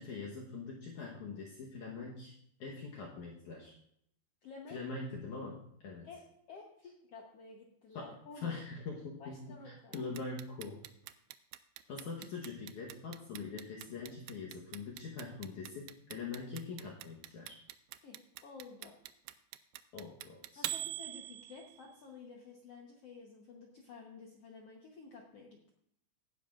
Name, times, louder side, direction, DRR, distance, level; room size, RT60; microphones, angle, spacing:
voice 1, 0.0-2.3 2.6-3.8 4.7-6.1 7.9-8.1 8.4-10.8 11.9-17.6 19.9-20.7, left 4 dB, 65° left, -2 dB, 2.2 m, -43 dB
voice 2, 4.4-4.8 6.0-6.2 6.5-8.6 9.2-10.0 18.0-19.0 20.6-25.7, left 4 dB, 85° left, 0 dB, 1.3 m, -52 dB
Clock, 9.9-21.9, right 16 dB, 80° right, 2.3 m, -43 dB
17.0 x 10.0 x 2.5 m, 0.73 s
omnidirectional pair, 4.5 m